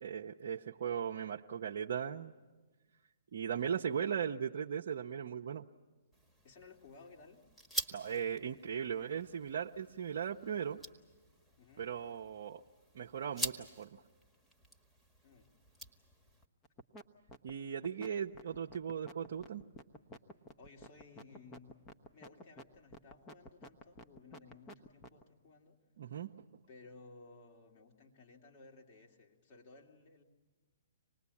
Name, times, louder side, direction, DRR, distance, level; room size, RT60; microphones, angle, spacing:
voice 1, 0.0-2.3 3.3-5.6 7.9-10.8 11.8-12.6 12.9-14.0 17.4-19.6 26.0-26.3, right 8 dB, 60° right, 0 dB, 0.7 m, -38 dB
sound 1, 6.1-16.4, right 1 dB, 5° left, 1.5 m, -46 dB
voice 2, 6.4-7.4 11.6-11.9 15.2-15.5 20.6-21.8 22.1-25.8 26.7-30.2, left 3 dB, 45° left, 1 dB, 2.9 m, -58 dB
sound 2, 16.6-17.0 17.3-25.2, left 1 dB, 20° left, 1.0 m, -51 dB
26.0 x 19.5 x 8.5 m, 1.3 s
hypercardioid pair, 135°, 0 cm